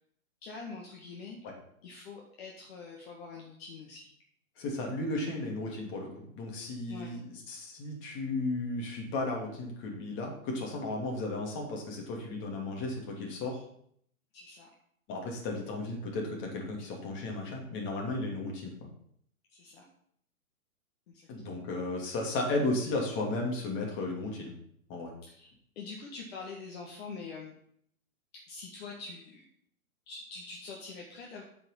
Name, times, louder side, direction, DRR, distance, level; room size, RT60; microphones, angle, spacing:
voice 1, 0.4-1.4 1.8-4.1 6.9-7.1 14.3-14.7 19.5-19.8 21.1-21.6 25.2-27.5 28.3-29.4 30.1-31.4, left 4 dB, 45° left, -2 dB, 1.8 m, -45 dB
voice 2, 4.6-13.6 15.1-18.7 21.3-24.5 24.9-25.1, left 2 dB, 25° left, 0 dB, 2.7 m, -34 dB
8.8 x 5.2 x 5.8 m, 0.67 s
figure-of-eight pair, 120°, 43 cm